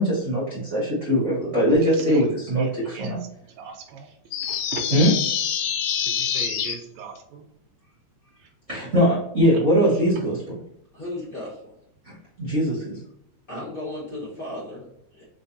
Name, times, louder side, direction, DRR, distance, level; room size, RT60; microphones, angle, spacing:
voice 1, 0.0-3.2 4.9-5.1 8.7-10.6 12.0-13.0, equal, 35° right, -9 dB, 1.3 m, -21 dB
voice 2, 2.6-3.2 3.6-4.1 4.4-4.8 6.1-7.4, right 6 dB, 80° right, 3 dB, 1.8 m, -38 dB
sound 1, 4.3-6.8, left 9 dB, 75° left, 1.7 m, -26 dB
voice 3, 10.9-11.7 13.5-15.2, left 1 dB, 35° left, -8 dB, 0.8 m, -36 dB
3.9 x 3.6 x 2.7 m, 0.76 s
omnidirectional pair, 3.5 m